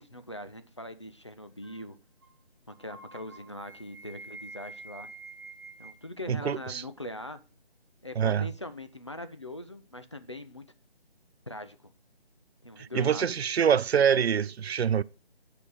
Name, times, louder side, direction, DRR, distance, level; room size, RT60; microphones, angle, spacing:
voice 1, 0.0-2.0 2.7-5.1 5.8-7.4 8.0-10.7 11.5-11.8 12.6-13.3, left 1 dB, 30° left, 0.5 m, -41 dB
sound 1, 1.6-1.9 2.2-2.4 2.7-6.1, right 3 dB, 15° right, 1.6 m, -47 dB
voice 2, 6.3-6.8 8.2-8.5 12.8-15.0, right 8 dB, 80° right, 0.5 m, -25 dB
9.7 x 5.0 x 6.3 m
figure-of-eight pair, 165°, 31 cm